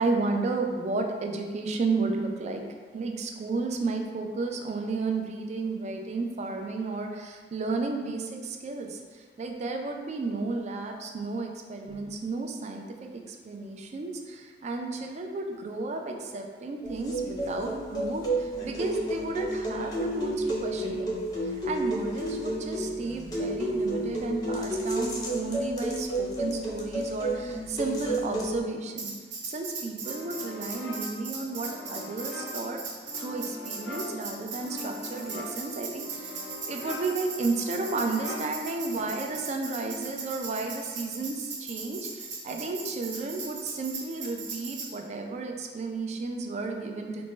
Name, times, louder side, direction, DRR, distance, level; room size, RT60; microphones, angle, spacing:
voice 1, 0.0-2.6 2.9-21.1 21.4-29.1 29.5-32.8 33.2-47.2, right 3 dB, 40° right, 3 dB, 0.3 m, -33 dB
sound 1, 16.8-28.6, right 1 dB, 20° left, 0.6 m, -31 dB
Tambourine, 29.0-44.9, right 4 dB, 75° right, 0.6 m, -38 dB
sound 2, 30.0-39.5, left 2 dB, 85° left, 0.5 m, -42 dB
4.2 x 2.1 x 3.1 m, 1.5 s
head